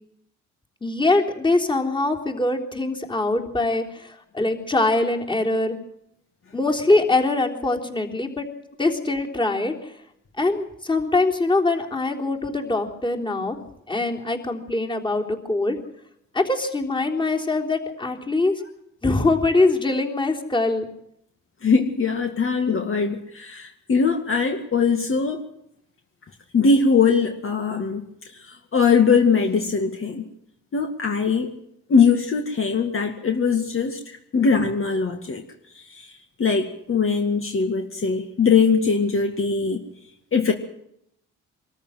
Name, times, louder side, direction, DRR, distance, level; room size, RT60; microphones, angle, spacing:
voice 1, 0.8-4.1 4.3-5.8 6.5-8.5 8.8-9.7 10.4-13.6 13.9-15.8 16.3-18.5 19.0-20.9, left 2 dB, 15° left, 1 dB, 3.7 m, -23 dB
voice 2, 21.6-25.5 26.5-28.0 28.4-30.3 30.7-31.5 31.9-35.4 35.9-36.1 36.4-39.8 40.3-40.5, left 5 dB, 45° left, 3 dB, 2.2 m, -21 dB
24.0 x 14.0 x 9.3 m, 0.77 s
cardioid pair, 90°, 30 cm